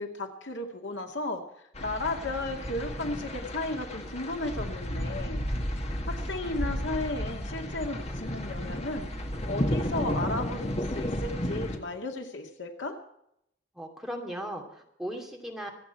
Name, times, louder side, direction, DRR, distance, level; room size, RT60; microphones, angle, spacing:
voice 1, 0.0-1.4 1.8-5.4 6.1-9.1 9.5-13.0, left 2 dB, 70° left, 3 dB, 2.3 m, -34 dB
sound 1, 1.7-11.8, equal, 35° left, 1.8 m, -33 dB
voice 2, 13.7-15.7, equal, ahead, 0 dB, 2.5 m, -37 dB
25.5 x 8.7 x 4.5 m, 0.75 s
head